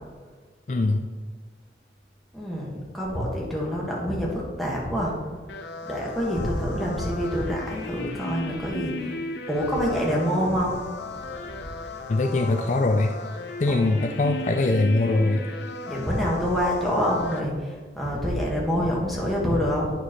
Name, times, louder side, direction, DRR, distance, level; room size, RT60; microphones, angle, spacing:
voice 1, 0.7-1.1 12.1-13.1 13.6-15.4, left 2 dB, 40° left, 4 dB, 0.4 m, -22 dB
voice 2, 2.3-5.3 5.8-9.2 9.5-10.8 11.1-11.7 13.7-14.0 15.9-19.9, equal, ahead, -5 dB, 1.7 m, -27 dB
sound 1, 5.5-17.4, left 2 dB, 70° left, 0.8 m, -36 dB
9.3 x 6.7 x 3.2 m, 1.4 s
head